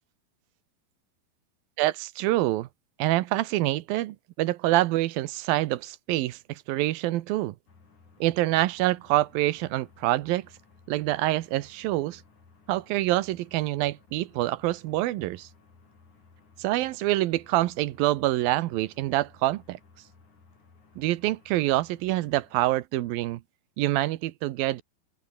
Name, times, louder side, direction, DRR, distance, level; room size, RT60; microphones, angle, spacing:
voice 1, 1.8-2.7 3.0-7.6 8.2-10.5 10.9-12.2 12.7-15.5 16.6-19.8 21.0-23.4 23.8-24.8, right 16 dB, 75° right, 2.5 m, -26 dB
sound 1, 7.7-22.7, left 4 dB, 50° left, 6.9 m, -58 dB
open air
omnidirectional pair, 4.5 m